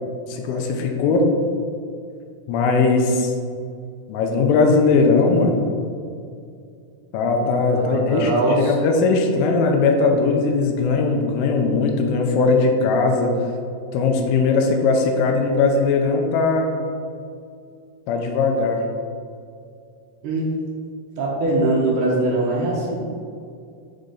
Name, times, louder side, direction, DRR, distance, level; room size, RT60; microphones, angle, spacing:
voice 1, 0.3-1.3 2.5-3.3 4.1-5.6 7.1-8.3 8.6-13.3 13.9-16.7 18.1-18.8, left 4 dB, 80° left, 2 dB, 2.4 m, -19 dB
voice 2, 7.7-8.7 20.2-20.5 21.2-23.0, right 2 dB, 75° right, -4 dB, 2.0 m, -21 dB
6.6 x 3.9 x 3.8 m, 2.4 s
omnidirectional pair, 4.7 m